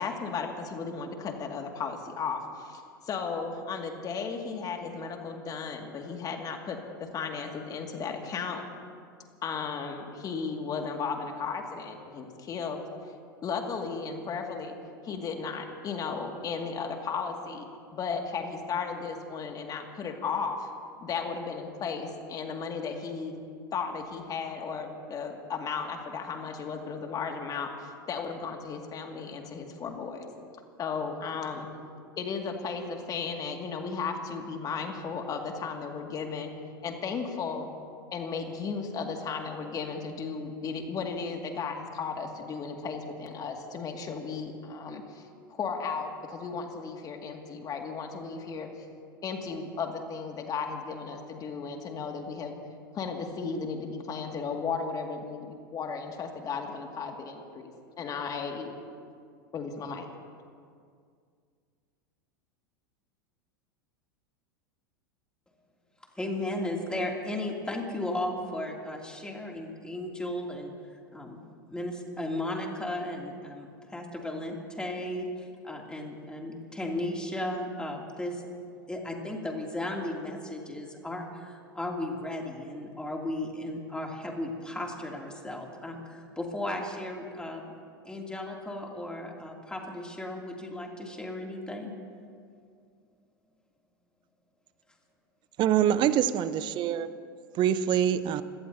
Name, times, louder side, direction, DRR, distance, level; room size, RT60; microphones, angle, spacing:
voice 1, 0.0-8.6 9.4-12.8 13.4-14.8 15.0-17.7 17.9-20.7 21.0-23.3 23.7-30.3 30.8-31.7 32.2-36.5 36.8-37.7 38.1-48.7 49.2-52.5 52.9-57.7 58.0-58.8 59.5-60.1, left 5 dB, 30° left, 3 dB, 2.2 m, -35 dB
voice 2, 66.2-71.4 71.7-78.4 78.9-87.8 88.0-92.0, left 1 dB, 10° left, 0 dB, 2.8 m, -35 dB
voice 3, 95.6-97.1 97.5-98.4, right 10 dB, 40° right, 14 dB, 0.8 m, -25 dB
26.5 x 18.0 x 2.8 m, 2.2 s
hypercardioid pair, 90°, 12 cm